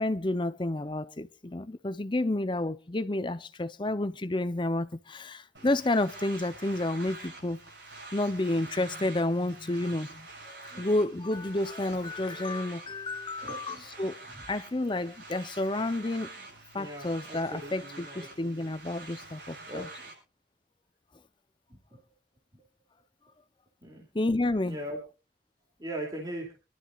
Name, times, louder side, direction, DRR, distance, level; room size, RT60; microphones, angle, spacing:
voice 1, 0.0-7.6 8.1-14.2 14.5-16.3 16.7-19.9 24.1-24.8, left 2 dB, 25° left, 0.7 m, -30 dB
sound 1, 5.6-20.1, right 2 dB, 85° right, 7.7 m, -47 dB
voice 2, 13.4-14.0 14.3-14.4 16.4-16.5 16.7-18.7 19.7-20.1 21.7-22.0 22.5-22.6 23.8-24.1 24.6-25.0 25.8-26.5, right 1 dB, 20° right, 2.7 m, -41 dB
26.0 x 12.0 x 2.4 m
head